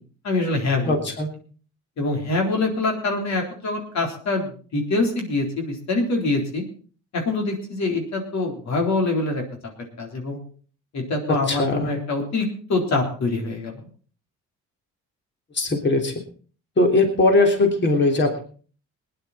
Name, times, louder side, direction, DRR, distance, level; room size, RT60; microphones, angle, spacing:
voice 1, 0.2-0.9 2.0-6.6 7.1-9.4 10.0-10.4 10.9-13.8, left 2 dB, 65° left, 2 dB, 3.9 m, -24 dB
voice 2, 0.8-1.3 11.5-11.9 15.5-16.1 16.8-18.4, left 2 dB, 35° left, 3 dB, 3.4 m, -20 dB
20.0 x 10.5 x 4.2 m, 0.40 s
cardioid pair, 90°, 30 cm